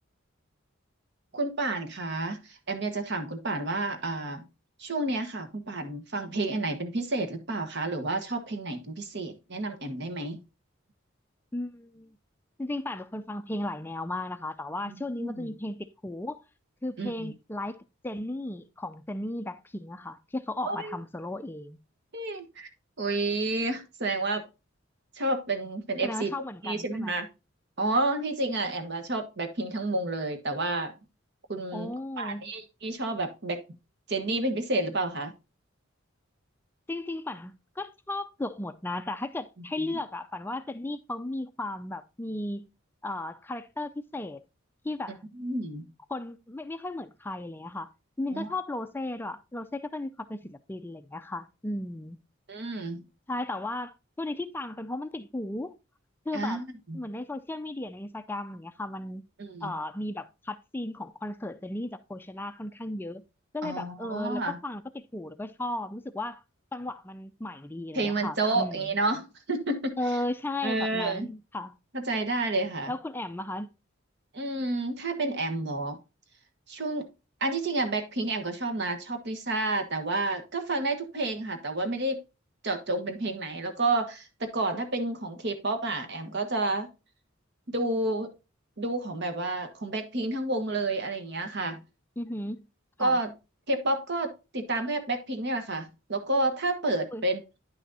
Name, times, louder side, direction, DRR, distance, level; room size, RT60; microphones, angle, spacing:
voice 1, 1.3-4.4 4.8-10.4 14.8-15.5 17.0-17.3 20.6-21.0 22.1-22.7 23.0-24.4 25.1-26.3 26.6-27.3 27.8-30.9 31.5-33.6 34.1-35.3 45.1-45.8 48.3-48.5 52.5-53.0 56.3-57.0 59.4-59.7 63.6-64.6 67.9-70.0 70.6-71.3 71.9-72.9 74.3-76.0 76.7-77.1 77.4-82.2 82.6-86.9 87.7-88.3 88.8-91.8 93.0-93.3 93.7-97.6, right 2 dB, 60° right, 1.3 m, -30 dB
voice 2, 11.5-12.1 12.6-16.4 16.8-21.8 26.0-27.1 31.7-32.4 36.9-42.6 43.0-44.4 44.8-45.2 46.1-47.9 48.2-52.2 53.3-55.7 56.3-56.6 56.9-59.2 59.6-63.2 63.5-66.4 66.7-68.8 70.0-71.8 72.9-73.7 92.2-92.6 93.0-93.2 97.1-97.2, left 2 dB, 10° left, 0.4 m, -35 dB
10.0 x 5.9 x 2.7 m
head